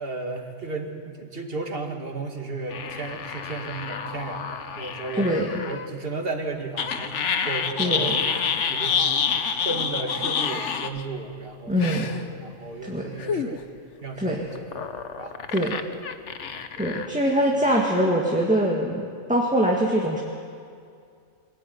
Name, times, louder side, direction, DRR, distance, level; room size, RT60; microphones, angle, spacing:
voice 1, 0.0-5.3 5.6-8.2 8.7-9.0 9.6-13.6 14.0-14.7 15.2-15.8 16.5-16.7, right 3 dB, 55° right, 3 dB, 2.4 m, -34 dB
sound 1, 2.7-5.9 6.8-11.0 11.8-12.2 13.2-13.6 14.5-17.1, left 6 dB, 85° left, 1.3 m, -28 dB
voice 2, 5.1-5.6 7.8-8.2 11.7-12.1 12.8-13.1 14.2-14.4 15.5-15.8 16.8-20.2, equal, 5° right, -2 dB, 2.1 m, -23 dB
25.5 x 15.0 x 9.5 m, 2.3 s
omnidirectional pair, 1.2 m